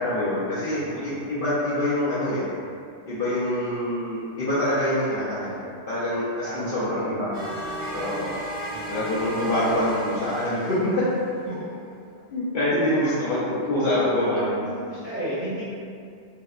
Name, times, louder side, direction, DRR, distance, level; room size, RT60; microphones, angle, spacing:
voice 1, 0.0-2.5 3.1-5.6 5.9-7.3 7.9-8.3 8.9-11.1 12.3-14.6, left 1 dB, 60° left, -11 dB, 0.6 m, -25 dB
voice 2, 0.8-1.2 6.4-7.1 8.7-9.0 13.7-15.6, equal, 45° right, -14 dB, 1.4 m, -32 dB
sound 1, 7.3-11.3, right 1 dB, 65° right, 0.7 m, -34 dB
2.7 x 2.1 x 2.3 m, 2.4 s
omnidirectional pair, 1.3 m